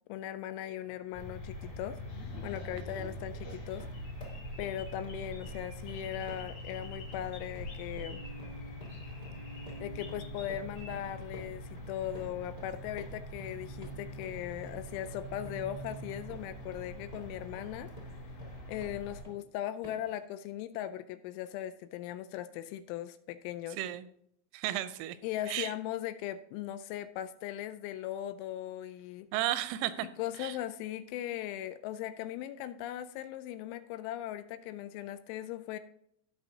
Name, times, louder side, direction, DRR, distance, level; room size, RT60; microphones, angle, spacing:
voice 1, 0.1-3.9 4.6-8.2 9.8-17.9 18.7-23.8 25.2-29.3 30.2-35.8, left 12 dB, 85° left, 12 dB, 2.9 m, -39 dB
sound 1, 0.8-1.0 1.4-1.8 2.2-19.5 19.8-20.2, right 1 dB, 25° left, 0.9 m, -52 dB
sound 2, 1.1-19.2, left 1 dB, 65° left, 6.6 m, -44 dB
sound 3, 2.1-10.9, left 1 dB, 45° left, 3.6 m, -48 dB
voice 2, 23.8-24.1 24.5-25.2 25.5-25.7 29.3-30.1 30.4-30.6, right 14 dB, 85° right, 13 dB, 3.2 m, -33 dB
18.0 x 6.2 x 2.8 m, 0.70 s
omnidirectional pair, 5.6 m